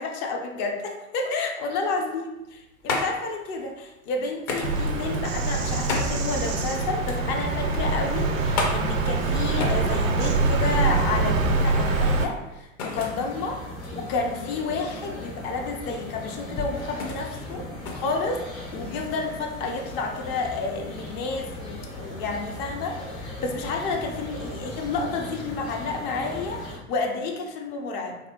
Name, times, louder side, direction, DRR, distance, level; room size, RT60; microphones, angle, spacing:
voice 1, 0.0-17.7 17.9-28.2, left 3 dB, 30° left, 2 dB, 0.3 m, -30 dB
sound 1, 2.4-18.9, left 3 dB, 45° left, 0.7 m, -35 dB
Bird vocalization bird call bird song, 4.6-12.2, right 3 dB, 80° right, 0.5 m, -24 dB
sound 2, 12.9-26.8, left 1 dB, 85° left, 1.0 m, -38 dB
3.2 x 2.6 x 2.7 m, 0.98 s
figure-of-eight pair, 85°, 39 cm